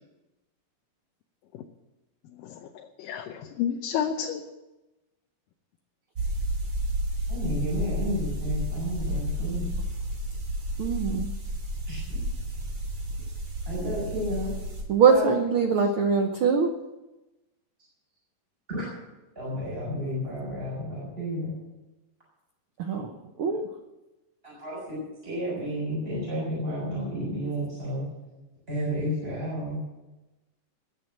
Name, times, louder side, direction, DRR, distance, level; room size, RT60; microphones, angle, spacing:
voice 1, 2.4-4.4, left 8 dB, 85° left, 4 dB, 2.5 m, -31 dB
sound 1, 6.2-14.8, equal, 40° right, 3.7 m, -31 dB
voice 2, 7.3-9.6 11.9-12.0 13.7-14.5 15.1-15.3 18.7-18.9 19.4-21.6 24.4-25.0 25.2-28.1 28.7-29.8, equal, 15° right, -8 dB, 6.9 m, -31 dB
voice 3, 10.8-11.3 14.9-16.7 22.8-23.1 23.4-23.7, right 5 dB, 80° right, 5 dB, 1.1 m, -22 dB
21.0 x 7.6 x 7.6 m, 1.0 s
omnidirectional pair, 3.8 m